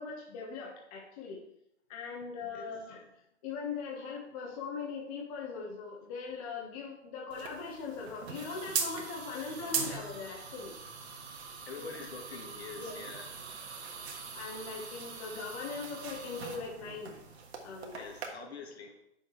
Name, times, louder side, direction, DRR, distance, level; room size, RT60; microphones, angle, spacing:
voice 1, 0.0-1.4 1.9-3.0 3.4-10.7 11.8-11.9 12.8-13.0 14.3-17.1 17.6-18.1, left 5 dB, 30° left, -1 dB, 1.3 m, -40 dB
sound 1, 7.3-18.3, right 5 dB, 65° right, 1.6 m, -41 dB
voice 2, 11.7-13.3 17.9-18.9, left 5 dB, 65° left, 3 dB, 1.6 m, -45 dB
8.3 x 6.6 x 3.2 m, 0.80 s
hypercardioid pair, 145°, 35 cm